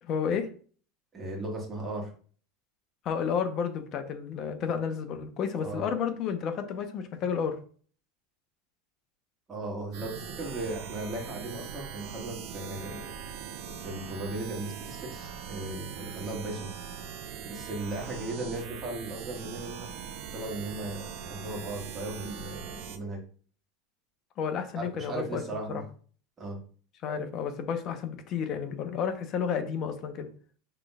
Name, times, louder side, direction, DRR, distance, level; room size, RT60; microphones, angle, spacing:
voice 1, 0.0-0.5 3.0-7.6 24.4-25.4 27.0-30.3, left 7 dB, 45° left, 7 dB, 0.9 m, -31 dB
voice 2, 1.1-2.1 5.5-5.8 9.5-13.1 13.6-16.7 17.4-19.9 20.3-23.2 24.7-25.8 26.4-26.6, right 2 dB, 25° right, 0 dB, 1.7 m, -37 dB
sound 1, 9.9-23.0, right 8 dB, 70° right, 0.5 m, -41 dB
5.9 x 3.3 x 2.4 m, 0.43 s
supercardioid pair, 120°, 0 cm